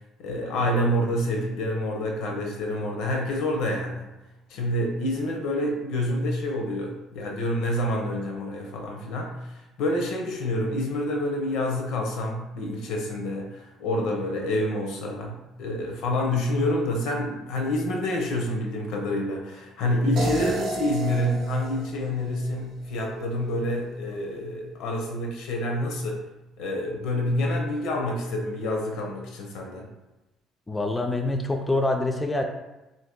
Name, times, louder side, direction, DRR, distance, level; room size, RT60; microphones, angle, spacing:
voice 1, 0.2-4.1 4.5-9.5 9.8-26.2 26.6-29.9, left 1 dB, 80° left, 1 dB, 0.7 m, -27 dB
sound 1, 20.2-23.2, right 3 dB, 60° right, 0.6 m, -33 dB
voice 2, 30.7-32.4, left 2 dB, 15° left, 3 dB, 0.4 m, -26 dB
2.7 x 2.6 x 3.6 m, 1.0 s
cardioid pair, 100°, 0 cm